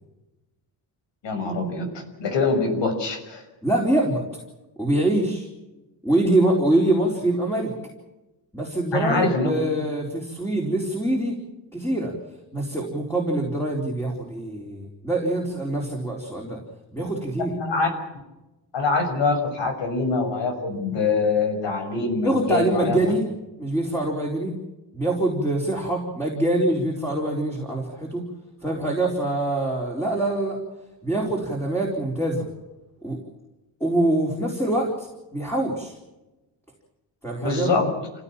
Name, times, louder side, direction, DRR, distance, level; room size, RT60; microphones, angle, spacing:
voice 1, 1.2-3.4 8.9-9.5 17.6-17.9 18.7-23.2 37.4-37.9, left 3 dB, 75° left, 6 dB, 6.4 m, -24 dB
voice 2, 3.6-4.2 4.8-5.5 6.0-7.7 8.5-11.4 11.7-12.1 12.5-16.6 16.9-17.5 22.2-23.2 23.6-24.5 24.9-28.2 28.6-30.6 31.0-32.5 33.0-33.2 33.8-35.9 37.2-37.7, right 1 dB, 5° left, -1 dB, 4.2 m, -24 dB
28.0 x 16.5 x 7.4 m, 1.0 s
wide cardioid pair, 160°, 44 cm